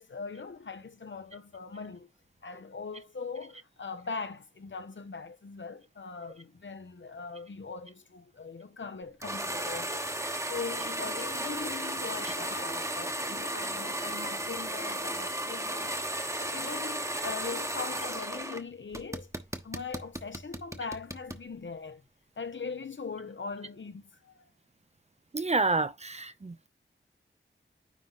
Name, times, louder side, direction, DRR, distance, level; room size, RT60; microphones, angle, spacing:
voice 1, 0.0-2.1 2.4-10.0 10.5-16.0 16.4-19.3 19.6-22.0 22.4-24.4, left 4 dB, 70° left, 1.1 m, -41 dB
sound 1, 9.2-18.6 18.9-21.4, right 1 dB, 15° right, 1.1 m, -34 dB
voice 2, 25.3-26.7, right 3 dB, 35° right, 0.7 m, -29 dB
9.7 x 3.3 x 4.1 m
wide cardioid pair, 85°, 20 cm